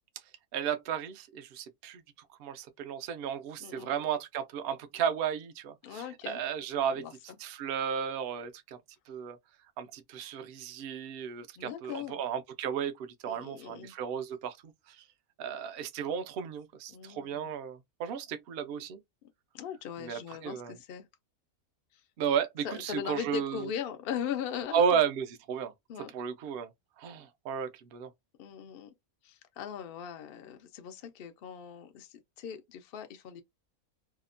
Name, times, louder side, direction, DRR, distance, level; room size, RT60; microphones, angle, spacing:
voice 1, 0.5-2.0 2.4-7.0 7.4-8.8 9.1-9.4 9.8-14.6 14.9-15.0 15.4-19.0 20.0-20.7 22.2-23.7 24.7-25.7 26.1-26.7 27.0-28.1, right 7 dB, 75° right, 0.5 m, -33 dB
voice 2, 3.6-3.9 5.8-6.4 6.9-7.4 11.6-12.2 13.2-13.9 16.9-17.5 19.5-21.1 21.9-22.0 22.6-25.0 25.9-26.1 28.4-28.9 29.2-33.4, left 9 dB, 80° left, 0.5 m, -39 dB
2.8 x 2.1 x 2.5 m
omnidirectional pair, 1.5 m